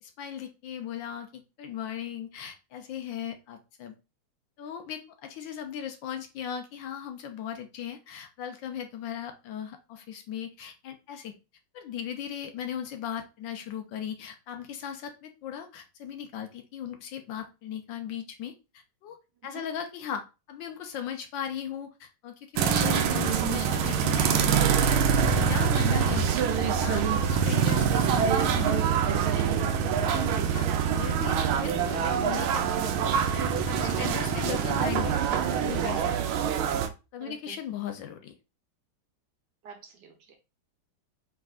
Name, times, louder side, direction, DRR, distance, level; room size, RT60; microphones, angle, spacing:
voice 1, 0.0-3.9 4.6-11.3 11.7-19.2 19.4-26.3 26.8-29.4 30.1-30.2 30.5-30.7 30.9-36.1 37.1-38.3, left 9 dB, 70° left, 7 dB, 1.2 m, -38 dB
sound 1, 22.6-36.9, right 7 dB, 85° right, 1.4 m, -25 dB
voice 2, 33.8-34.1 37.2-37.6 39.6-40.3, right 6 dB, 65° right, 4 dB, 1.3 m, -43 dB
4.8 x 3.5 x 2.4 m, 0.28 s
omnidirectional pair, 2.2 m